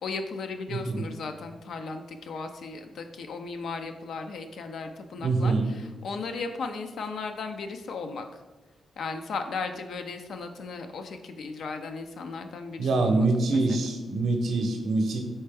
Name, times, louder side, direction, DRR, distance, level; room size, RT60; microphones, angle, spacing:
voice 1, 0.0-5.5 6.0-8.3 9.0-13.8, left 4 dB, 80° left, 6 dB, 0.4 m, -36 dB
voice 2, 0.7-1.0 5.2-5.7 12.8-15.2, right 3 dB, 80° right, 3 dB, 0.6 m, -25 dB
4.3 x 3.3 x 3.3 m, 1.2 s
cardioid pair, 80°, 0 cm